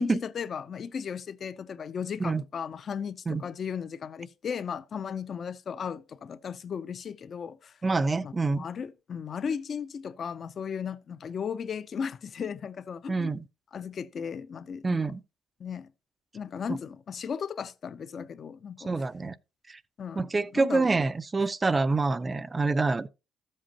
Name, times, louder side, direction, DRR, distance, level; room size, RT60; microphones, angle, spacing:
voice 1, 0.0-7.7 8.2-13.3 13.7-15.0 15.6-15.9 16.3-18.9 20.0-20.3 20.5-20.9, left 7 dB, 45° left, 0.5 m, -36 dB
voice 2, 7.8-8.6 13.1-13.5 14.8-15.2 16.7-16.8 18.8-19.4 19.7-19.8 20.1-23.1, right 3 dB, 20° right, 0.4 m, -26 dB
13.0 x 7.6 x 2.9 m
cardioid pair, 115°, 0 cm